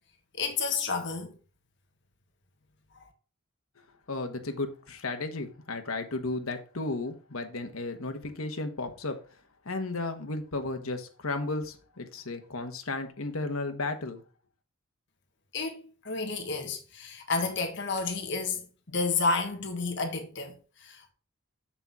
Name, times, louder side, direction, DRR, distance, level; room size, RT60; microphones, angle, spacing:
voice 1, 0.3-1.3 2.9-3.1 15.5-21.1, left 4 dB, 55° left, 1.5 m, -31 dB
voice 2, 4.1-9.2 9.6-14.2, left 2 dB, 80° left, 1.3 m, -34 dB
7.2 x 6.8 x 3.6 m
head